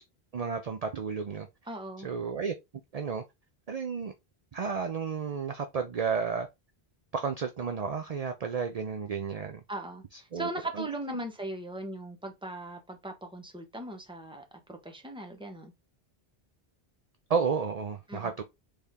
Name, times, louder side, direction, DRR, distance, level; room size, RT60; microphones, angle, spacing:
voice 1, 0.3-1.5 2.0-2.5 2.9-3.2 3.7-4.1 4.5-6.5 7.1-9.6 10.3-10.9 11.1-11.2 17.3-18.4, right 5 dB, 45° right, 0.6 m, -32 dB
voice 2, 1.7-2.1 9.7-15.7 18.1-18.3, right 1 dB, 5° right, 0.9 m, -39 dB
4.2 x 3.5 x 3.6 m
omnidirectional pair, 1.1 m